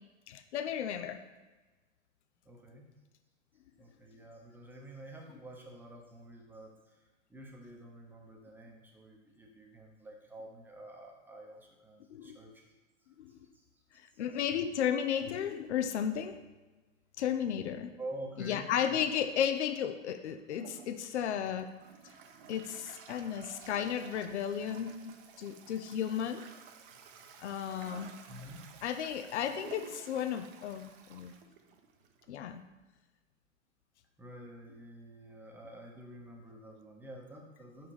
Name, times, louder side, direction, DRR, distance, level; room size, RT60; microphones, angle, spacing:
voice 1, 0.3-1.2 12.1-12.4 13.2-13.4 13.9-16.4 17.2-17.9 18.4-21.7 22.5-26.4 27.4-28.2 28.8-31.3 32.3-32.6, left 9 dB, 60° left, 8 dB, 0.7 m, -34 dB
voice 2, 2.4-2.9 3.8-12.7 13.3-14.2 18.0-19.3 27.1-27.4 28.3-28.9 34.2-37.9, right 1 dB, 5° right, 0 dB, 0.9 m, -49 dB
Toilet flush, 20.5-32.3, right 7 dB, 45° right, 0.7 m, -53 dB
5.7 x 4.6 x 4.8 m, 1.2 s
figure-of-eight pair, 110°, 39 cm